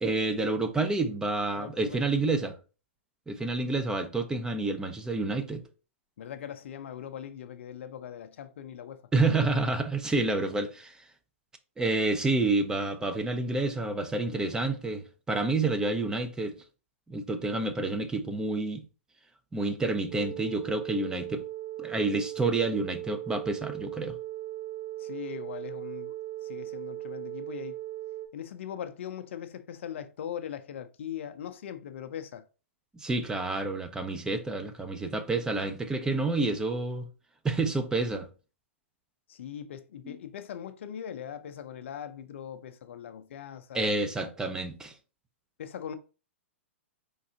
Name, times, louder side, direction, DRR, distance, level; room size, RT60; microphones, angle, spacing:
voice 1, 0.0-2.6 3.3-5.6 9.1-11.0 11.8-16.5 17.1-18.8 19.5-21.4 21.8-24.1 32.9-37.0 37.4-38.3 40.0-40.2 43.7-44.9, right 3 dB, 10° right, 0.5 m, -29 dB
voice 2, 1.5-2.1 6.2-9.0 25.0-26.1 26.4-27.8 28.3-32.4 39.3-44.3 45.6-46.0, left 9 dB, 65° left, 0.5 m, -40 dB
sound 1, 20.1-28.3, right 15 dB, 55° right, 1.2 m, -38 dB
4.6 x 3.6 x 2.8 m
hypercardioid pair, 125°, 7 cm